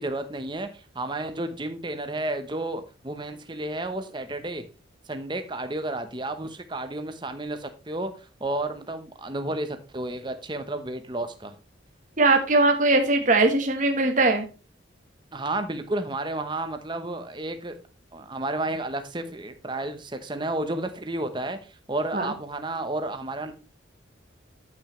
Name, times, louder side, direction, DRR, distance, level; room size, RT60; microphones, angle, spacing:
voice 1, 0.0-4.6 5.1-11.5 15.3-17.8 18.1-23.5, right 2 dB, 25° right, 0.9 m, -32 dB
voice 2, 12.2-14.5 22.1-22.3, right 2 dB, 40° right, 1.2 m, -20 dB
9.0 x 8.0 x 3.2 m
head